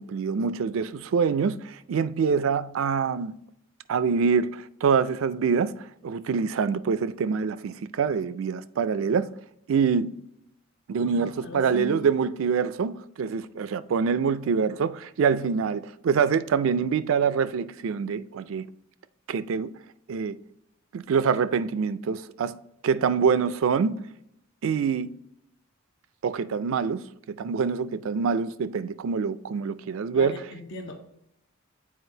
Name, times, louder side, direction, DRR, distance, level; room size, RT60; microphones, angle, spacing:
voice 1, 0.0-3.3 3.9-9.3 9.7-10.1 10.9-18.7 19.3-19.7 20.1-20.4 20.9-22.6 22.8-24.0 24.6-25.1 26.2-30.3, right 6 dB, 70° right, 0.4 m, -25 dB
voice 2, 11.0-12.1 30.1-31.0, left 2 dB, 60° left, 1.0 m, -38 dB
7.8 x 4.7 x 2.7 m
head